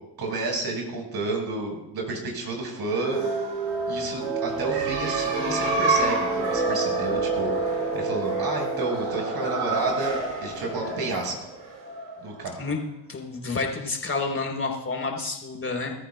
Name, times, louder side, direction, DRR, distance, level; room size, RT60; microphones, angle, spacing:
voice 1, 0.2-3.2 3.9-7.5 7.9-11.5 12.2-12.6, right 3 dB, 50° right, 1 dB, 5.2 m, -30 dB
sound 1, 2.9-12.4, right 3 dB, 75° right, 3.3 m, -27 dB
voice 2, 13.1-15.9, left 3 dB, 25° left, 2 dB, 3.8 m, -29 dB
23.0 x 13.5 x 2.3 m, 0.88 s
hypercardioid pair, 55°, 49 cm